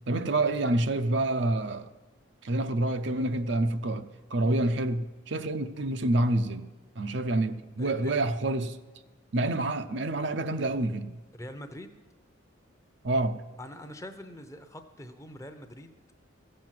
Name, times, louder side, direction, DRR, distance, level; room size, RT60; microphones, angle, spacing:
voice 1, 0.1-1.9 2.4-4.0 4.3-6.7 7.0-8.8 9.3-11.2 13.0-13.4, right 2 dB, 60° right, 0.6 m, -27 dB
voice 2, 7.8-8.1 11.3-11.9 13.6-15.9, left 1 dB, 15° left, 0.8 m, -43 dB
15.5 x 7.7 x 7.5 m
head